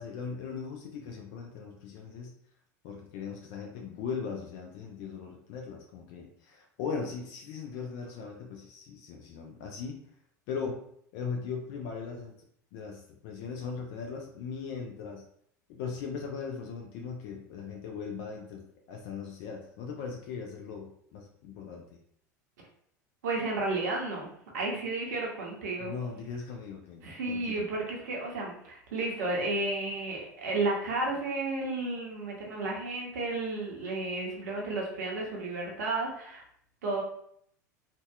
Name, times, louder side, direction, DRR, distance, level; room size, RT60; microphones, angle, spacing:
voice 1, 0.0-2.3 2.8-10.0 10.5-10.8 11.1-12.3 12.7-15.2 15.7-18.6 18.9-21.8 25.8-27.6, left 5 dB, 55° left, 2 dB, 0.4 m, -39 dB
voice 2, 23.2-24.3 24.5-25.9 27.0-36.4 36.8-37.0, right 2 dB, 70° right, -1 dB, 0.7 m, -32 dB
2.6 x 2.1 x 2.2 m, 0.68 s
figure-of-eight pair, 80°, 10 cm